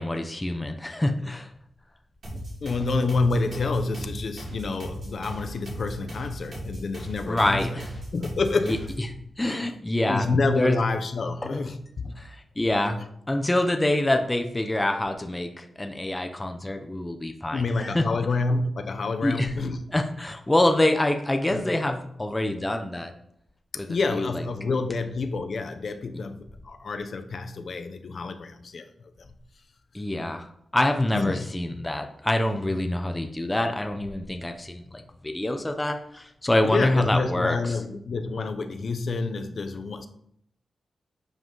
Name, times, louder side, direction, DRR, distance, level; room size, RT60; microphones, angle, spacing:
voice 1, 0.0-1.5 7.3-7.9 8.7-8.8 9.4-10.3 10.5-10.8 11.4-11.5 12.2-13.0 13.3-18.1 19.2-19.5 19.9-23.1 23.8-24.4 29.9-37.8, left 1 dB, 10° left, 5 dB, 0.7 m, -26 dB
sound 1, 2.2-9.1, right 1 dB, 50° right, 4.8 m, -38 dB
voice 2, 2.3-7.8 8.1-8.9 9.6-9.7 10.1-12.2 17.5-19.8 21.5-21.7 23.9-28.9 31.1-31.5 36.6-40.1, left 3 dB, 50° left, 8 dB, 0.8 m, -28 dB
11.0 x 7.7 x 3.9 m, 0.72 s
wide cardioid pair, 170°, 0 cm